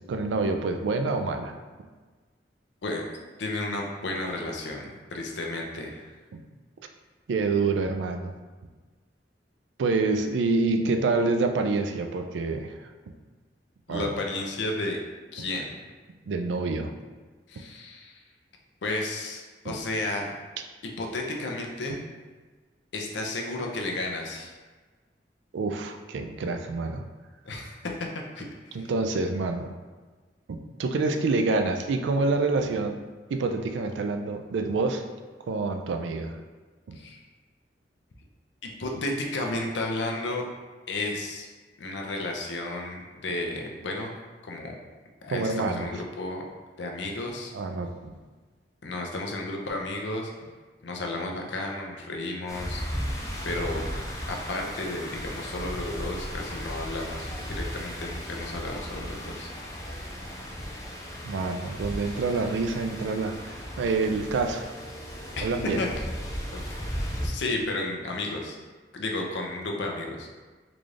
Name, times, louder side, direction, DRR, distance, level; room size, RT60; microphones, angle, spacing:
voice 1, 0.1-1.5 6.3-6.4 7.3-8.3 9.8-12.7 13.9-14.1 15.4-15.5 16.3-16.9 19.7-19.8 25.5-27.0 28.7-29.7 30.5-33.0 33.3-35.0 35.5-36.3 36.9-37.0 45.3-45.9 47.5-48.1 61.2-63.3 63.8-64.7 65.4-65.8, right 3 dB, 90° right, 6 dB, 0.4 m, -27 dB
voice 2, 3.4-6.1 13.9-15.0 15.3-15.7 17.5-18.2 18.8-20.3 21.0-22.0 22.9-24.5 27.4-28.1 28.3-28.4 37.0-37.2 38.8-40.5 40.9-41.5 41.8-44.1 44.4-44.7 45.2-46.4 46.8-47.5 48.8-50.3 50.8-52.8 53.4-53.9 54.3-59.5 65.4-65.5 65.8-65.9 66.5-66.6 66.9-68.6 68.9-70.3, left 2 dB, 80° left, 1 dB, 0.6 m, -32 dB
sound 1, 52.5-67.3, equal, 20° left, 0.5 m, -36 dB
3.9 x 2.4 x 3.3 m, 1.4 s
head